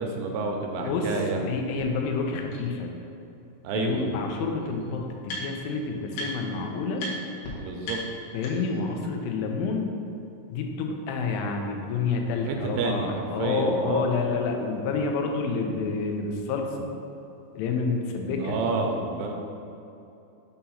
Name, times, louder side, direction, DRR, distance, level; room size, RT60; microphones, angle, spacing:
voice 1, 0.0-1.4 3.6-4.1 7.6-8.0 12.4-14.1 18.4-19.3, right 3 dB, 80° right, 2 dB, 2.6 m, -29 dB
voice 2, 0.9-1.2 1.5-2.9 3.7-7.1 8.3-9.9 10.5-16.9 17.6-18.6, left 4 dB, 90° left, 2 dB, 2.8 m, -28 dB
sound 1, 1.8-1.9 2.5-2.6 3.9-4.0 4.2-5.7 6.1-6.6 7.0-7.1 7.4-7.5 7.8-8.8, left 1 dB, 70° left, 2.7 m, -38 dB
6.9 x 2.9 x 5.5 m, 2.9 s
omnidirectional pair, 4.7 m